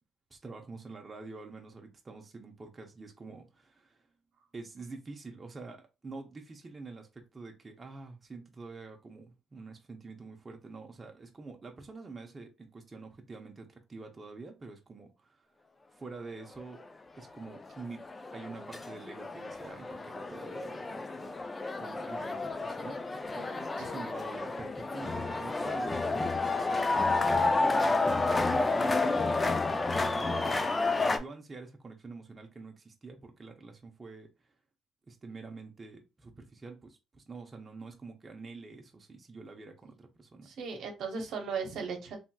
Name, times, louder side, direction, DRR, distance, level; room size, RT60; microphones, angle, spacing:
voice 1, 0.3-4.1 4.5-15.5 15.9-16.8 17.1-18.0 18.3-21.4 21.8-23.0 23.3-23.5 23.8-30.7 31.0-34.3 35.1-40.5, right 3 dB, 30° right, 0.7 m, -46 dB
sound 1, 16.6-16.7 17.4-31.2, left 3 dB, 25° left, 0.4 m, -30 dB
voice 2, 23.4-23.9 40.4-42.2, right 5 dB, 70° right, 0.8 m, -37 dB
3.3 x 2.6 x 2.3 m
supercardioid pair, 75°, 0 cm